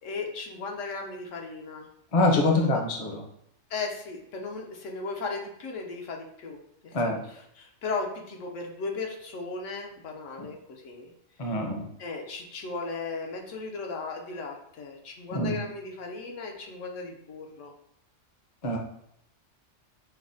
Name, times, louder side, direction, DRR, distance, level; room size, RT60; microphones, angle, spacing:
voice 1, 0.0-1.9 2.5-2.7 3.7-11.1 11.4-11.6 12.0-17.7, left 4 dB, 80° left, 2 dB, 1.0 m, -36 dB
voice 2, 2.1-3.2 6.9-7.2 11.4-11.8 15.3-15.6 18.6-18.8, left 2 dB, 40° left, 2 dB, 0.5 m, -24 dB
5.5 x 2.0 x 2.5 m, 0.74 s
omnidirectional pair, 1.3 m